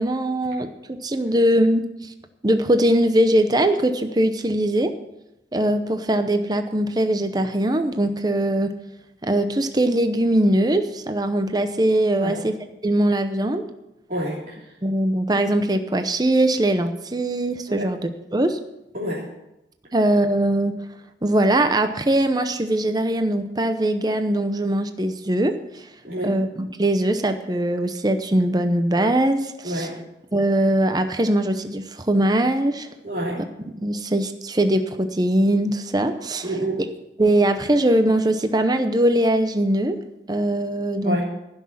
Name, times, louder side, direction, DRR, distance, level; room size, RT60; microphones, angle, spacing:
voice 1, 0.0-2.1 2.4-4.9 5.5-8.8 9.2-12.6 12.8-13.6 14.8-18.6 19.9-20.8 21.2-25.6 26.2-29.9 30.3-32.9 33.8-36.5 37.2-40.0 40.3-41.2, right 1 dB, 25° right, 8 dB, 0.7 m, -21 dB
voice 2, 14.1-14.7 17.7-17.9 18.9-19.3 26.0-26.4 29.6-30.0 33.0-33.4 36.4-36.8 41.0-41.2, right 1 dB, 50° right, -7 dB, 3.2 m, -28 dB
15.5 x 6.3 x 7.2 m, 0.90 s
head